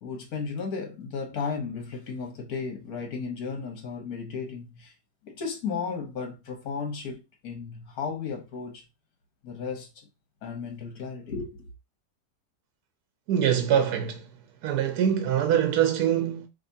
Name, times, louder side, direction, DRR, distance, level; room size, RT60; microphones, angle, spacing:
voice 1, 0.0-4.9 5.2-8.8 9.4-10.1 10.4-11.7, left 5 dB, 65° left, 1.6 m, -34 dB
voice 2, 13.3-14.3 14.6-16.5, right 9 dB, 70° right, 1.1 m, -24 dB
5.2 x 2.9 x 2.7 m
omnidirectional pair, 1.8 m